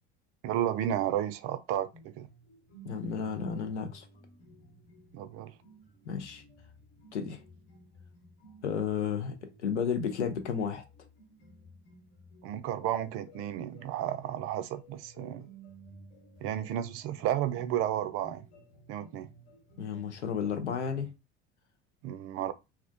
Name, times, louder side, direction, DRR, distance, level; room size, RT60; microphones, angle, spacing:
voice 1, 0.4-2.3 5.1-5.5 12.4-15.5 16.4-18.5 18.9-19.3 22.0-22.5, right 11 dB, 45° right, 0.4 m, -32 dB
sound 1, 1.7-21.1, right 1 dB, 55° left, 1.1 m, -55 dB
voice 2, 2.8-4.1 6.0-6.4 7.1-7.4 8.6-10.8 19.8-21.1, left 7 dB, 85° left, 0.6 m, -32 dB
2.3 x 2.1 x 2.5 m
figure-of-eight pair, 70°, 34 cm